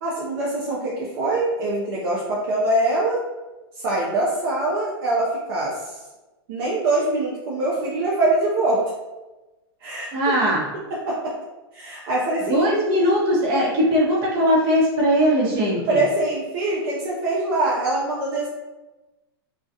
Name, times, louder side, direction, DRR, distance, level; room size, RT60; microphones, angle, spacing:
voice 1, 0.0-3.2 3.8-5.9 6.5-8.8 9.8-10.1 11.1-11.2 11.7-12.6 15.9-18.5, right 2 dB, 60° right, -5 dB, 0.6 m, -23 dB
voice 2, 10.1-10.7 12.5-16.0, equal, 40° right, -4 dB, 0.9 m, -20 dB
2.3 x 2.3 x 2.6 m, 1.1 s
hypercardioid pair, 130°, 13 cm